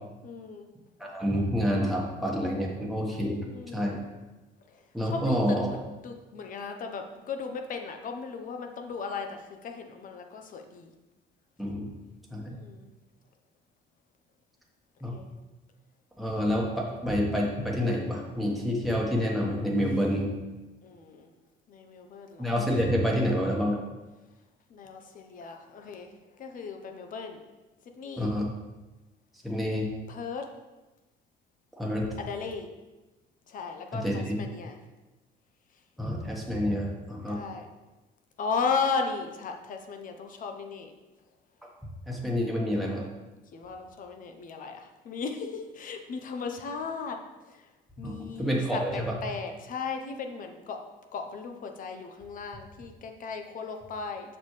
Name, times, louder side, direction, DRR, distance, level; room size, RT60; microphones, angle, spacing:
voice 1, 0.2-0.7 3.5-3.9 4.7-10.9 12.5-12.9 15.1-15.3 20.8-21.3 21.7-22.5 24.7-26.1 26.4-27.4 28.0-28.4 30.1-30.5 32.2-32.7 33.5-34.8 37.2-37.7 38.4-40.9 43.5-47.2 47.5-47.7 48.0-50.9 51.1-54.4, left 5 dB, 55° left, 5 dB, 0.8 m, -36 dB
voice 2, 1.0-3.4 3.7-4.0 4.9-5.7 11.6-11.9 12.3-12.5 15.0-15.2 16.2-20.3 22.4-23.8 28.2-28.4 29.4-29.9 31.8-32.1 33.9-34.4 36.0-37.4 42.1-43.0 48.0-49.2, equal, ahead, -3 dB, 1.4 m, -28 dB
7.0 x 5.3 x 3.3 m, 1.1 s
cardioid pair, 110°, 17 cm